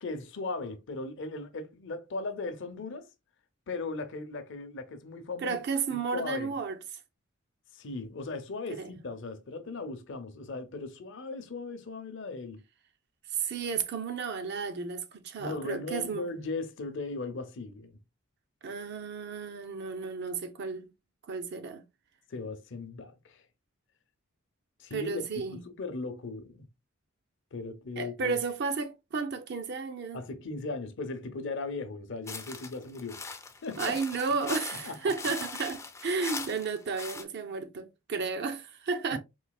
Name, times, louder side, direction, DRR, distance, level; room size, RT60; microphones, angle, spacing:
voice 1, 0.0-3.1 3.7-5.6 5.9-6.5 7.7-12.6 15.4-18.0 22.3-23.4 24.8-26.7 27.5-28.4 30.1-33.2 33.6-33.9 34.8-35.0 39.1-39.2, left 3 dB, 60° left, 0.6 m, -38 dB
voice 2, 5.4-6.8 8.7-8.9 13.3-16.3 18.6-20.9 21.3-21.8 24.9-25.6 28.0-30.2 33.8-39.2, right 5 dB, 50° right, 0.5 m, -33 dB
sound 1, 32.3-37.2, left 4 dB, 15° left, 0.4 m, -40 dB
3.9 x 2.7 x 2.3 m
head